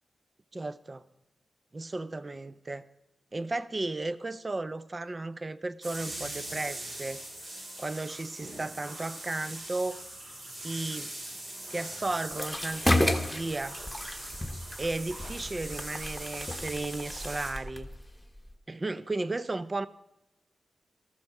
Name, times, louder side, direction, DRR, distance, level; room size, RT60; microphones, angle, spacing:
voice 1, 0.5-1.0 1.7-2.9 3.3-7.2 7.8-10.0 10.6-11.1 11.7-13.8 14.8-17.9 18.7-19.9, right 2 dB, 30° right, 15 dB, 0.6 m, -34 dB
sound 1, 5.8-17.5, right 1 dB, 60° right, 6.4 m, -41 dB
sound 2, 12.3-18.5, left 1 dB, 5° left, 1.4 m, -32 dB
13.5 x 13.5 x 4.8 m, 0.92 s
wide cardioid pair, 95°, 0 cm